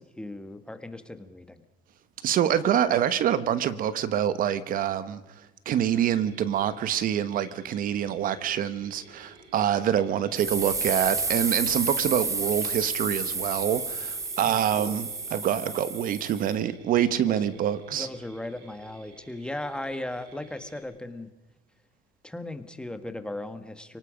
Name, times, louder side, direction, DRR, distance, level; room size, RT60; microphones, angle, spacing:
voice 1, 0.0-1.6 14.5-15.0 17.2-17.6 17.9-21.3 22.2-24.0, left 1 dB, 5° left, 1.5 m, -37 dB
voice 2, 2.2-5.2 5.6-18.1, right 10 dB, 55° right, 1.1 m, -26 dB
Mechanisms, 5.8-20.8, right 2 dB, 80° right, 4.6 m, -53 dB
sound 1, 10.4-16.5, right 3 dB, 20° right, 1.5 m, -31 dB
29.0 x 18.5 x 5.1 m
cardioid pair, 115°, 17 cm